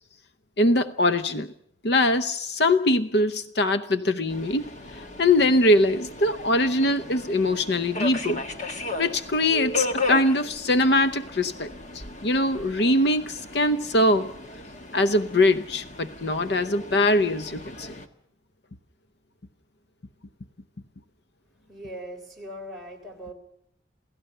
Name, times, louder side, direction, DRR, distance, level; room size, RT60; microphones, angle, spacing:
voice 1, 0.6-1.5 1.8-4.7 4.9-8.4 9.0-14.3 14.9-17.9, left 1 dB, 60° left, 11 dB, 0.8 m, -22 dB
Subway metro underground, 4.3-18.1, left 3 dB, 40° left, 1.4 m, -36 dB
voice 2, 21.7-23.3, equal, ahead, -2 dB, 3.7 m, -40 dB
28.0 x 17.0 x 6.7 m, 0.75 s
head